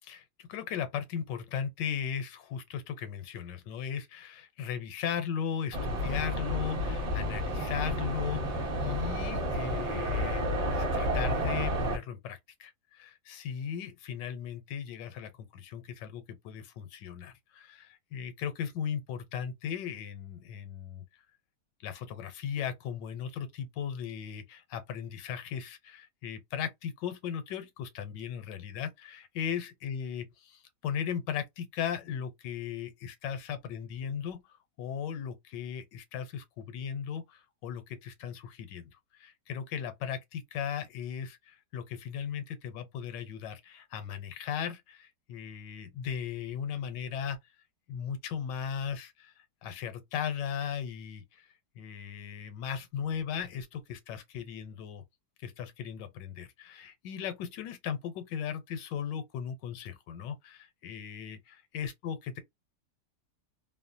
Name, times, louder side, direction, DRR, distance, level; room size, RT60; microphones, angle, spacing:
voice 1, 0.0-21.0 21.8-47.4 47.9-49.3 49.6-51.5 51.8-55.0 55.4-62.4, left 8 dB, 90° left, 1.4 m, -37 dB
sound 1, 5.7-12.0, equal, 35° right, 0.6 m, -31 dB
3.0 x 2.2 x 2.5 m
omnidirectional pair, 1.8 m